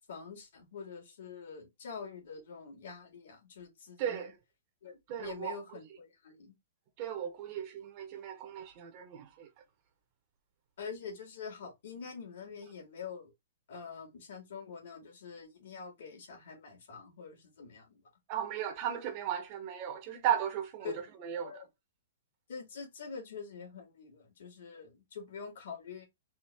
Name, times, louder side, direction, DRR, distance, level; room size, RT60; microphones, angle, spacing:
voice 1, 0.1-4.2 4.8-6.5 10.8-13.3 13.7-18.0 20.8-21.0 21.4-21.7 22.5-26.0, left 5 dB, 60° left, 2.3 m, -45 dB
voice 2, 4.0-4.4 5.1-5.6 7.0-9.5 18.3-20.9 21.2-21.6, right 9 dB, 30° right, 0.8 m, -36 dB
4.3 x 2.7 x 3.4 m
hypercardioid pair, 170°, 0 cm